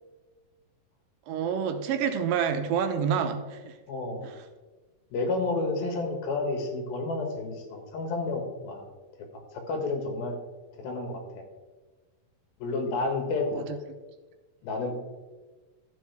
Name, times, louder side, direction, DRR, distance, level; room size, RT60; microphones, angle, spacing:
voice 1, 1.3-3.7 4.2-4.3 13.6-13.7, right 7 dB, 80° right, 8 dB, 2.3 m, -28 dB
voice 2, 3.9-4.3 5.1-8.8 9.5-10.4 10.7-11.4 12.6-13.6 14.6-15.0, left 3 dB, 90° left, 3 dB, 3.4 m, -30 dB
13.0 x 7.7 x 3.5 m, 1.2 s
omnidirectional pair, 4.1 m